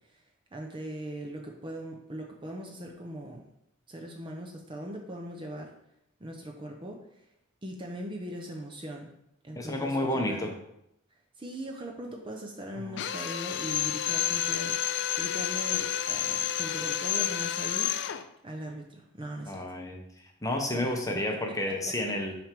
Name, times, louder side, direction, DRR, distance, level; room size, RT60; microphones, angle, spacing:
voice 1, 0.5-3.4 3.9-5.7 6.2-7.2 7.6-9.1 9.4-10.5 11.4-18.0 18.4-19.6 20.7-20.9 21.3-21.6, equal, 20° right, 1 dB, 0.6 m, -40 dB
voice 2, 9.5-10.5 12.9-13.0 19.5-20.0 20.4-22.4, left 1 dB, 15° left, 2 dB, 0.8 m, -30 dB
Drill, 13.0-18.3, left 11 dB, 55° left, 0.3 m, -30 dB
6.0 x 3.4 x 5.2 m, 0.79 s
head